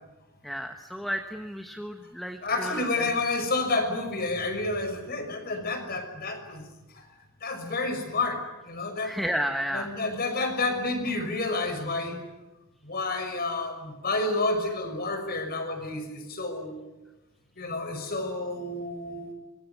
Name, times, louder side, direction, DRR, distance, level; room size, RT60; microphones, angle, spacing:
voice 1, 0.4-3.1 9.0-9.9, equal, ahead, 5 dB, 1.3 m, -32 dB
voice 2, 2.4-6.6 6.9-7.0 7.4-8.4 8.7-9.1 9.7-12.2 12.8-16.8 17.6-19.3, left 2 dB, 45° left, 6 dB, 6.0 m, -30 dB
25.0 x 23.5 x 9.4 m, 1.0 s
head